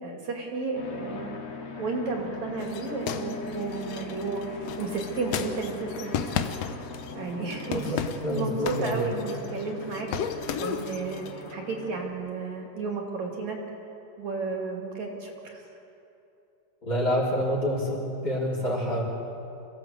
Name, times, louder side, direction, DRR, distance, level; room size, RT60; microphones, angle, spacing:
voice 1, 0.0-1.4 1.8-4.4 4.8-6.2 7.1-7.9 8.3-13.6 14.2-15.6, right 4 dB, 60° right, 1 dB, 3.8 m, -33 dB
sound 1, 0.8-12.1, left 3 dB, 50° left, 2.9 m, -40 dB
sound 2, 2.6-7.2 7.5-9.6 9.9-11.4, left 8 dB, 65° left, 1.7 m, -34 dB
voice 2, 7.7-9.1 16.8-19.0, equal, 30° left, -4 dB, 4.6 m, -27 dB
26.5 x 16.5 x 8.1 m, 2.8 s
omnidirectional pair, 3.7 m